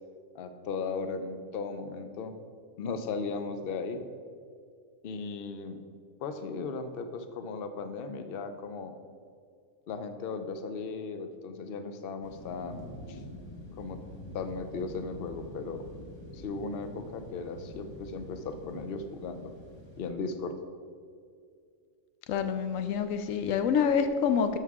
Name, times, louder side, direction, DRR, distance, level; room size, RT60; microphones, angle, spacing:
voice 1, 0.3-2.3 2.8-4.0 5.0-5.8 6.2-8.9 9.9-13.2 13.7-14.0 14.3-15.8 16.3-19.5 20.0-20.5, left 4 dB, 55° left, 8 dB, 0.8 m, -36 dB
sound 1, 12.2-20.1, left 1 dB, 20° left, 1.1 m, -46 dB
voice 2, 22.3-24.6, left 7 dB, 85° left, 9 dB, 1.0 m, -27 dB
12.0 x 6.6 x 3.6 m, 2.2 s
omnidirectional pair, 1.3 m